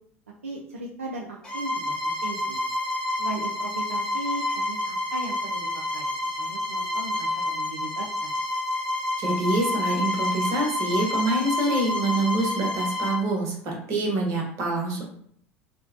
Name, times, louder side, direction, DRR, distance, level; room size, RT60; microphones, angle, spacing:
voice 1, 0.4-1.7 2.0-2.6 3.2-5.7 5.9-6.1 6.4-8.3, right 2 dB, 85° right, -2 dB, 0.4 m, -37 dB
Bowed string instrument, 1.4-13.2, left 2 dB, 10° left, 0.9 m, -28 dB
voice 2, 9.2-15.0, right 2 dB, 50° right, -1 dB, 1.1 m, -26 dB
3.0 x 2.1 x 2.5 m, 0.62 s
figure-of-eight pair, 75°, 7 cm